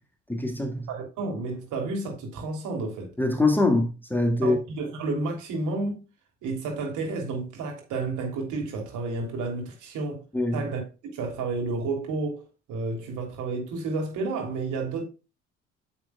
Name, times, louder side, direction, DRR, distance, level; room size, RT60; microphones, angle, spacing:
voice 1, 0.3-0.9 3.2-4.6 10.3-10.7, left 2 dB, 5° left, 1.7 m, -23 dB
voice 2, 0.9-3.1 4.4-6.0 6.4-10.2 10.5-12.4 12.7-15.0, right 3 dB, 55° right, 3.2 m, -31 dB
9.6 x 7.0 x 2.3 m
figure-of-eight pair, 55°, 35 cm